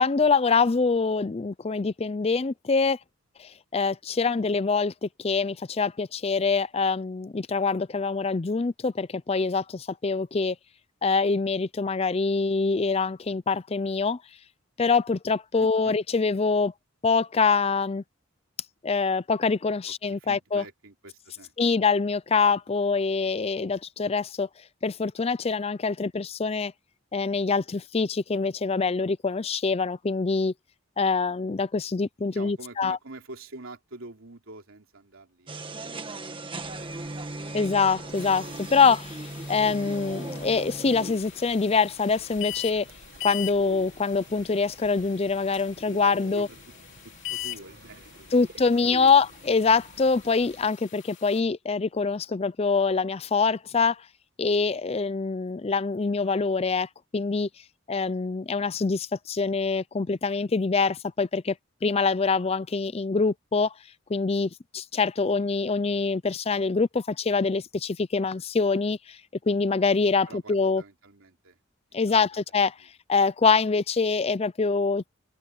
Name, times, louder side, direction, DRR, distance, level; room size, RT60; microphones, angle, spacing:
voice 1, 0.0-3.0 3.7-9.6 10.0-10.5 11.0-14.2 14.8-16.7 17.0-18.0 18.8-20.6 21.6-24.5 24.8-26.7 27.1-30.5 31.0-33.0 37.5-39.1 39.5-42.8 43.2-46.5 48.3-53.9 54.4-56.9 57.1-57.5 57.9-61.5 61.8-63.7 64.1-69.0 69.5-70.8 71.9-72.7 73.1-75.0, left 4 dB, 30° left, 0.4 m, -24 dB
voice 2, 15.5-16.0 20.2-21.5 32.3-36.0 46.3-46.6 47.0-49.1 55.7-55.8 65.3-65.5 70.3-71.6 71.9-72.4, right 2 dB, 80° right, 3.1 m, -47 dB
sound 1, 35.5-41.1, right 2 dB, 25° right, 1.5 m, -38 dB
sound 2, 36.6-50.7, right 2 dB, 50° right, 1.6 m, -49 dB
sound 3, 38.1-51.4, left 15 dB, 60° left, 3.4 m, -42 dB
head